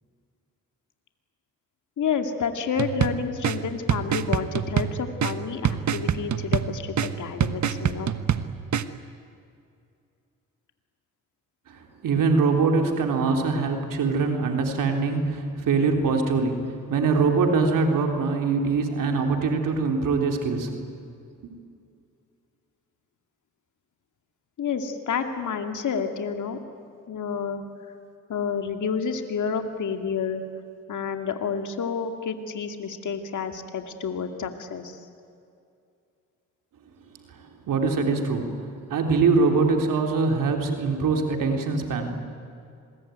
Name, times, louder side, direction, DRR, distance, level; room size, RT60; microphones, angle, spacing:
voice 1, 2.0-8.1 24.6-26.6 27.1-27.6 28.3-30.4 30.9-35.0, left 6 dB, 65° left, 6 dB, 2.4 m, -29 dB
sound 1, 2.8-8.9, right 8 dB, 60° right, 1.3 m, -27 dB
voice 2, 11.7-20.7 21.4-21.5 37.3-42.2, right 4 dB, 80° right, 3 dB, 3.6 m, -23 dB
26.5 x 21.5 x 9.3 m, 2.5 s
supercardioid pair, 60°, 32 cm